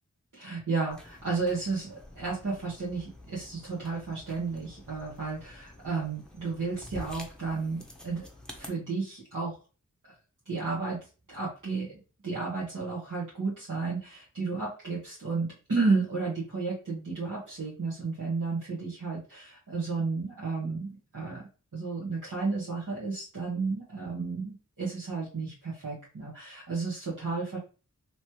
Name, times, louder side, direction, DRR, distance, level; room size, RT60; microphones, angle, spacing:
voice 1, 0.3-8.2 8.5-9.6 10.4-11.0 11.3-27.6, right 4 dB, 70° right, -8 dB, 1.2 m, -32 dB
sound 1, 0.9-8.7, left 1 dB, ahead, 0.8 m, -48 dB
3.1 x 3.1 x 3.0 m, 0.35 s
wide cardioid pair, 50°, 33 cm